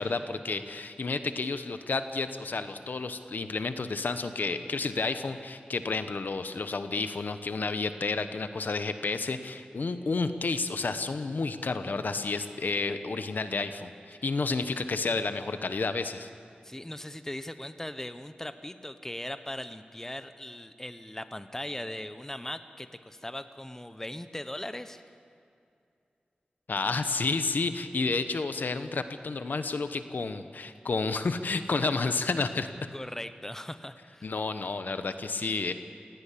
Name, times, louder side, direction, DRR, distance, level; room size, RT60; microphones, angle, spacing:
voice 1, 0.0-16.3 26.7-32.7 34.2-35.7, left 3 dB, 75° left, 10 dB, 1.0 m, -31 dB
voice 2, 16.6-25.0 32.9-34.3, left 1 dB, 15° left, 10 dB, 1.0 m, -39 dB
18.5 x 16.5 x 8.5 m, 2.4 s
wide cardioid pair, 55°, 3 cm